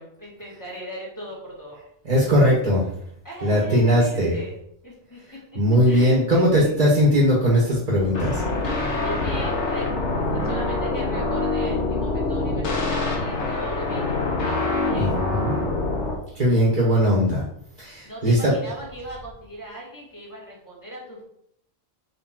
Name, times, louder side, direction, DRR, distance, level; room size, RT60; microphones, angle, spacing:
voice 1, 0.0-1.8 3.2-4.6 4.8-5.2 5.9-6.7 8.9-15.2 18.0-21.2, equal, 15° left, -4 dB, 2.0 m, -38 dB
voice 2, 2.0-2.9 3.4-4.4 5.5-8.4 8.8-8.9 15.0-15.6 16.3-17.4 17.8-18.5, equal, 35° right, -4 dB, 1.5 m, -19 dB
sound 1, 8.1-16.1, left 2 dB, 60° left, 1.4 m, -25 dB
5.1 x 4.3 x 4.5 m, 0.72 s
omnidirectional pair, 1.4 m